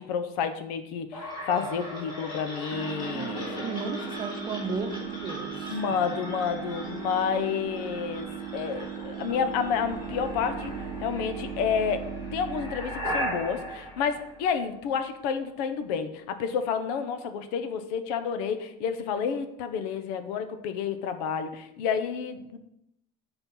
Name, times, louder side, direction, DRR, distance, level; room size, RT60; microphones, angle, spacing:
voice 1, 0.0-3.7 5.7-10.7 11.0-22.6, left 7 dB, 80° left, 9 dB, 1.0 m, -30 dB
sound 1, 1.1-15.0, equal, 20° left, 2.9 m, -38 dB
sound 2, 2.7-12.7, right 10 dB, 60° right, 0.5 m, -38 dB
voice 2, 3.1-5.8, right 4 dB, 25° right, 5 dB, 0.9 m, -35 dB
8.0 x 4.5 x 5.6 m, 0.82 s
cardioid pair, 150°, 20 cm